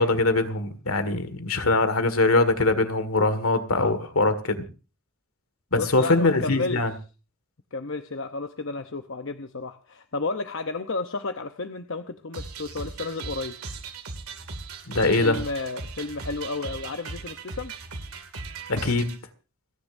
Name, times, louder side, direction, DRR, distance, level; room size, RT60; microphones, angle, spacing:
voice 1, 0.0-4.6 5.7-6.9 14.9-15.4 18.7-19.2, left 2 dB, 75° left, 1.9 m, -22 dB
voice 2, 5.8-6.8 7.7-13.6 15.2-17.7, left 3 dB, 60° left, 0.8 m, -32 dB
sound 1, 12.3-19.2, right 4 dB, 90° right, 2.4 m, -38 dB
29.0 x 10.5 x 2.6 m
head